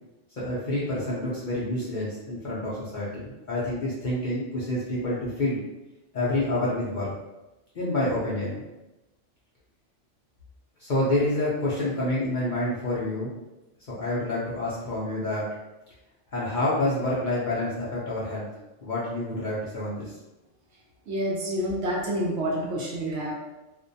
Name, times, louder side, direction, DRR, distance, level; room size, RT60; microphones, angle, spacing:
voice 1, 0.4-5.6 6.1-7.1 7.7-8.6 10.8-13.3 14.0-15.5 16.3-18.5 18.8-20.1, left 1 dB, 50° left, -8 dB, 0.6 m, -28 dB
voice 2, 21.1-23.3, equal, 65° right, -3 dB, 0.8 m, -28 dB
2.5 x 2.2 x 2.6 m, 1.0 s
omnidirectional pair, 1.3 m